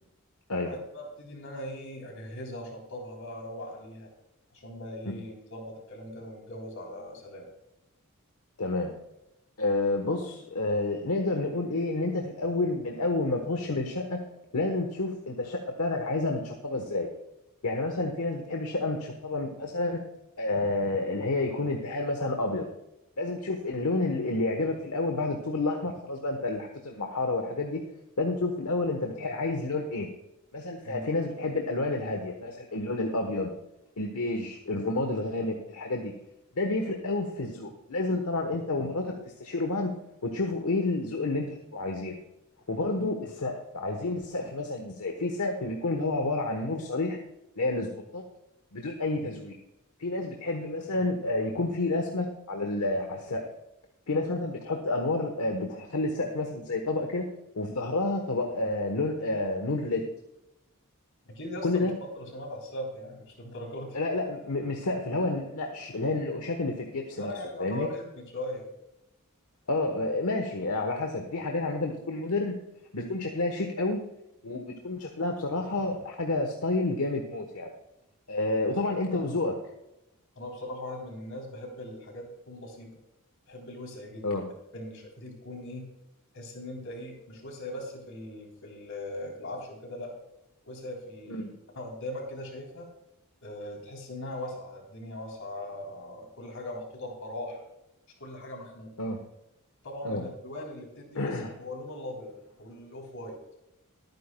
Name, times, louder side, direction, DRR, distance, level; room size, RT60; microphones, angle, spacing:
voice 1, 0.6-4.1 4.5-7.5 30.8-31.0 43.0-43.2 49.2-49.3 61.4-61.9 62.2-64.0 67.2-68.7 78.6-78.7 79.0-79.3 80.4-83.0 83.5-85.9 86.3-90.1 90.6-92.9 93.4-97.6 98.2-98.9 99.8-102.3 102.6-103.4, left 1 dB, 65° left, 0 dB, 3.6 m, -40 dB
voice 2, 8.6-8.9 9.6-14.2 14.5-17.1 17.6-20.0 20.4-22.7 23.2-27.8 28.2-30.1 30.5-33.5 34.0-36.1 36.5-39.9 40.2-42.2 42.7-47.2 47.6-48.2 48.7-49.5 50.0-53.5 54.1-57.3 57.6-60.0 61.6-61.9 63.9-67.3 67.6-67.9 69.7-72.6 72.9-74.1 74.4-77.7 78.3-79.6 84.2-84.4 91.3-91.5 99.0-99.2 100.0-100.2 101.1-101.5, left 2 dB, 80° left, 3 dB, 1.2 m, -29 dB
22.5 x 9.4 x 2.3 m, 0.88 s
head